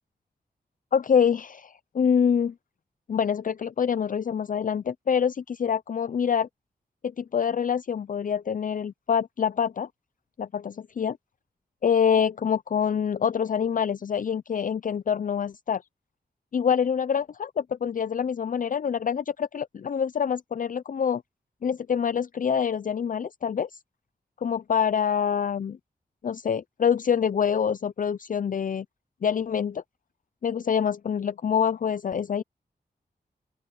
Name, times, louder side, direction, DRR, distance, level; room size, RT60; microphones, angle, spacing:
voice 1, 0.9-2.5 3.1-6.5 7.2-9.9 10.4-11.2 11.8-15.8 16.5-21.2 21.6-23.7 24.4-25.8 26.2-28.9 29.2-29.8 30.4-32.4, left 7 dB, 50° left, 0.5 m, -26 dB
open air
cardioid pair, 60°, 17 cm